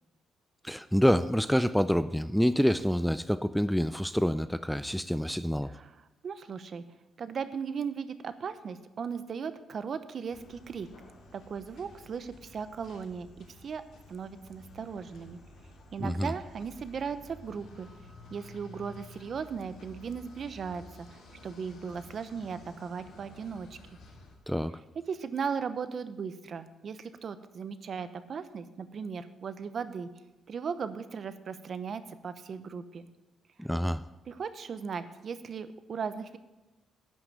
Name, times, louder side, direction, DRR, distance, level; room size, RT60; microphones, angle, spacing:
voice 1, 0.6-5.7 16.0-16.3 24.5-24.8 33.6-34.0, equal, ahead, 13 dB, 0.4 m, -27 dB
voice 2, 5.7-6.8 7.2-10.9 11.3-13.8 14.1-15.4 15.9-17.9 18.3-23.8 25.1-30.1 30.5-33.1 34.3-36.4, right 6 dB, 50° right, 11 dB, 0.8 m, -37 dB
sound 1, 10.3-24.3, left 2 dB, 75° left, 3.2 m, -52 dB
10.5 x 6.0 x 8.2 m, 1.0 s
cardioid pair, 90°, 0 cm